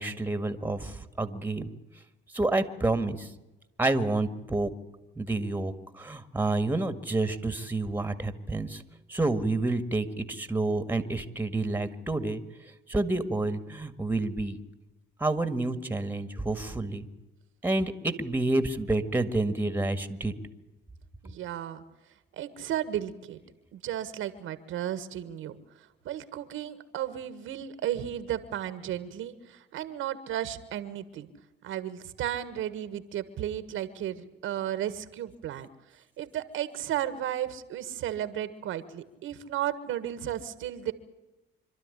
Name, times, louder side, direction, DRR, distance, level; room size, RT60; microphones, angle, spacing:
voice 1, 0.0-1.7 2.3-3.3 3.8-4.7 5.2-8.8 9.1-12.4 12.9-14.6 15.2-17.1 17.6-20.3, right 2 dB, 10° right, 11 dB, 2.0 m, -29 dB
voice 2, 21.2-21.8 22.3-23.4 23.7-31.3 31.6-40.9, right 11 dB, 85° right, 13 dB, 1.6 m, -34 dB
26.5 x 12.5 x 9.9 m, 1.0 s
cardioid pair, 90°, 20 cm